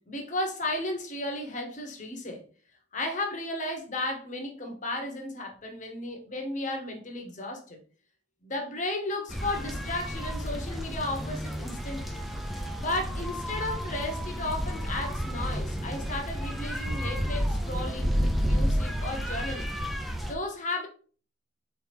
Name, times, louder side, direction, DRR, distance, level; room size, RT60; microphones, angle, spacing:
voice 1, 0.0-2.4 2.9-7.8 8.4-12.2 12.8-19.7 20.2-20.9, left 2 dB, 40° left, 3 dB, 1.0 m, -34 dB
sound 1, 9.3-20.3, equal, ahead, 0.4 m, -31 dB
4.5 x 3.4 x 3.4 m, 0.41 s
head